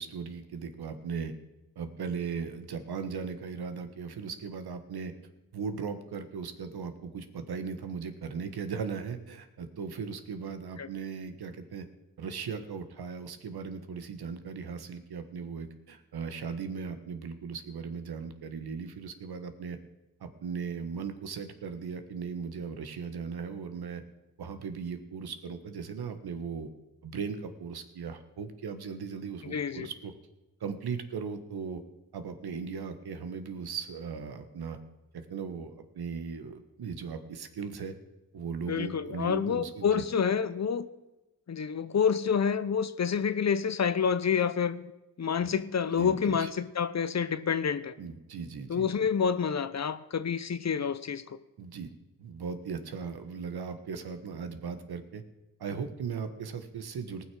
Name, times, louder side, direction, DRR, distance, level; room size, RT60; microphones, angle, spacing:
voice 1, 0.0-1.3 1.7-5.1 5.5-11.9 12.2-19.8 20.2-24.0 24.4-26.7 27.0-30.1 30.6-31.8 32.1-34.8 35.1-37.9 38.3-40.0 45.4-45.5 46.0-46.5 48.0-49.1 51.6-51.9 52.2-55.2 55.6-57.2, right 5 dB, 65° right, 9 dB, 1.5 m, -38 dB
voice 2, 29.4-29.9 38.7-40.9 41.5-44.9 45.2-47.9 48.7-51.4, left 6 dB, 40° left, 14 dB, 0.9 m, -28 dB
18.5 x 6.2 x 6.2 m, 1.0 s
cardioid pair, 55°, 40 cm